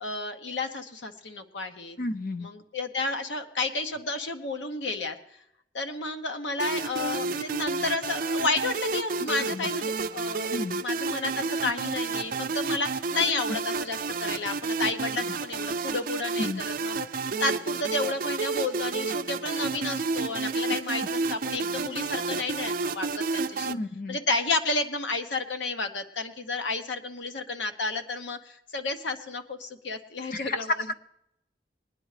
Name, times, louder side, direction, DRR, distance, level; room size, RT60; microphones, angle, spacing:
voice 1, 0.0-2.0 2.4-5.2 5.7-10.5 10.8-16.5 16.8-16.9 17.4-23.7 24.1-30.7, left 3 dB, 85° left, 7 dB, 1.0 m, -31 dB
voice 2, 2.0-2.5 9.2-9.7 10.5-10.8 15.2-15.3 16.4-16.6 23.7-24.2 30.3-30.6, left 2 dB, 55° left, 10 dB, 0.7 m, -33 dB
sound 1, 6.6-23.7, right 4 dB, 50° right, 0.5 m, -30 dB
21.5 x 9.9 x 3.3 m, 0.79 s
head